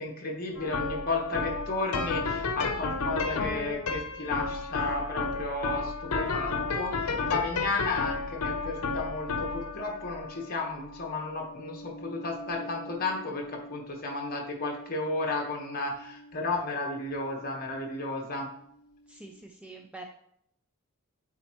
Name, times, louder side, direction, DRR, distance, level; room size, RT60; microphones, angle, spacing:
voice 1, 0.0-18.5, left 3 dB, 40° left, 0 dB, 1.3 m, -33 dB
sound 1, 0.6-17.8, left 4 dB, 90° left, 0.7 m, -34 dB
voice 2, 19.6-20.1, right 2 dB, 5° right, 3 dB, 0.3 m, -44 dB
8.2 x 4.2 x 3.1 m, 0.69 s
head